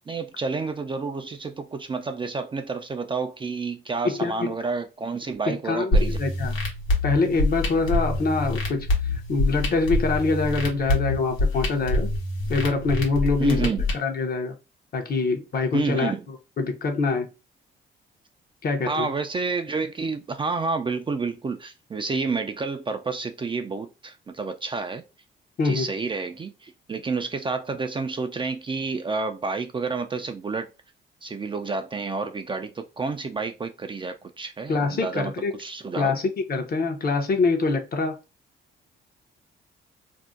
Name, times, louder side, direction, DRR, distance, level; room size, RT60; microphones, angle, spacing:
voice 1, 0.1-6.2 13.4-13.9 15.7-16.2 18.9-25.0 25.6-30.7 31.2-36.2, right 4 dB, 25° right, 0.4 m, -29 dB
voice 2, 4.0-4.5 5.5-6.6 7.0-8.9 9.3-12.1 12.5-13.6 13.9-14.5 14.9-16.1 16.6-17.3 18.6-19.1 25.6-25.9 34.7-35.5 36.0-36.2 36.5-38.2, left 3 dB, 50° left, 0.8 m, -24 dB
sound 1, 5.9-13.9, left 2 dB, 85° left, 1.1 m, -25 dB
2.6 x 2.1 x 3.6 m
cardioid pair, 90°, 20 cm